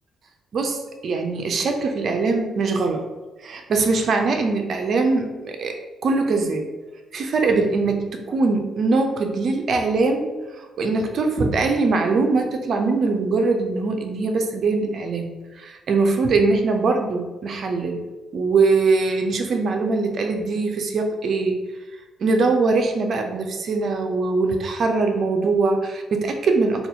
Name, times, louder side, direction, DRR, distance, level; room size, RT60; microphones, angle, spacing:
voice 1, 0.5-3.0 3.4-6.7 7.1-10.3 10.6-15.3 15.6-18.1 18.3-21.6 22.2-26.9, right 3 dB, 55° right, 4 dB, 0.5 m, -22 dB
4.0 x 2.4 x 2.7 m, 1.2 s
cardioid pair, 90°, 0 cm